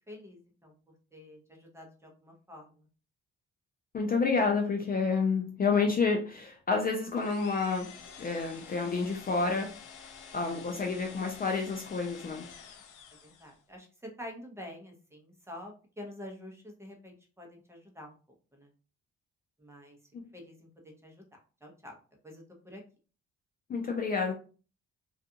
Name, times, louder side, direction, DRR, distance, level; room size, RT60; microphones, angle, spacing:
voice 1, 0.1-0.7 1.1-2.9 10.4-10.6 13.2-18.1 18.5-18.7 19.6-20.0 20.3-21.2 21.6-22.0 22.2-22.8, left 1 dB, 10° right, 0.8 m, -47 dB
voice 2, 3.9-7.9 8.2-9.7 10.3-12.5 20.1-20.2 23.7-24.3, left 4 dB, 30° left, 0.4 m, -29 dB
sound 1, 7.1-13.6, left 6 dB, 90° left, 0.5 m, -49 dB
2.4 x 2.3 x 2.7 m
cardioid pair, 90°, 30 cm